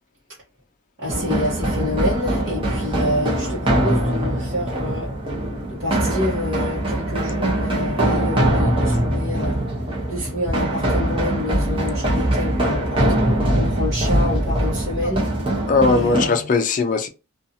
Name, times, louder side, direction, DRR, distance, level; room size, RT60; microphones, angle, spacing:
voice 1, 1.0-5.1 5.7-9.6 10.1-13.0 13.6-15.3 15.9-16.5, left 1 dB, 50° right, 1.0 m, -28 dB
sound 1, 1.1-16.3, right 1 dB, 25° right, 0.7 m, -22 dB
voice 2, 15.7-17.1, left 3 dB, 35° left, 0.4 m, -19 dB
2.6 x 2.4 x 2.6 m
head